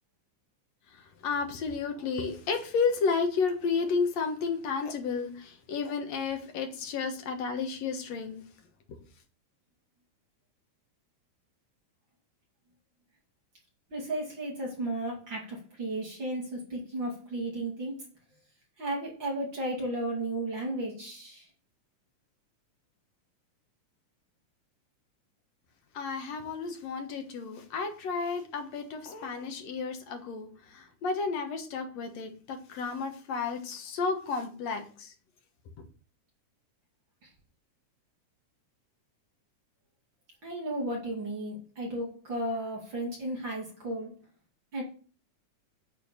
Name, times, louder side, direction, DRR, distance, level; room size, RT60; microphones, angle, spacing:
voice 1, 0.9-8.5 8.9-9.0 25.9-35.1, left 5 dB, 65° left, 2.3 m, -32 dB
voice 2, 13.9-18.0 18.8-21.5 40.4-44.1 44.7-44.8, right 1 dB, 40° right, 3.1 m, -34 dB
8.9 x 4.4 x 7.1 m
omnidirectional pair, 3.5 m